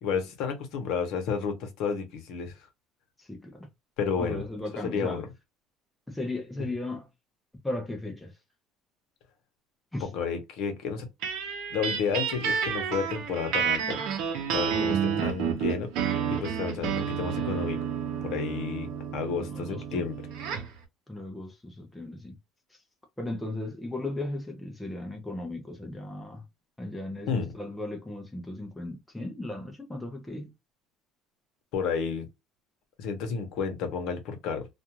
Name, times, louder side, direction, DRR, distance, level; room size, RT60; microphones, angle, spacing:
voice 1, 0.0-2.5 4.0-4.4 4.8-5.3 10.0-11.1 11.7-14.0 14.5-15.9 16.2-17.8 18.2-20.2 27.3-27.5 31.7-32.3 33.0-34.7, left 6 dB, 60° left, 0.9 m, -31 dB
voice 2, 3.2-3.7 4.2-5.2 6.1-7.1 7.6-8.3 9.9-10.1 14.7-14.9 19.5-20.0 21.1-22.4 23.2-26.5 26.8-30.5, left 2 dB, 5° left, 0.5 m, -36 dB
sound 1, 11.2-20.8, right 8 dB, 65° right, 0.7 m, -30 dB
2.4 x 2.4 x 2.9 m
cardioid pair, 170°, 0 cm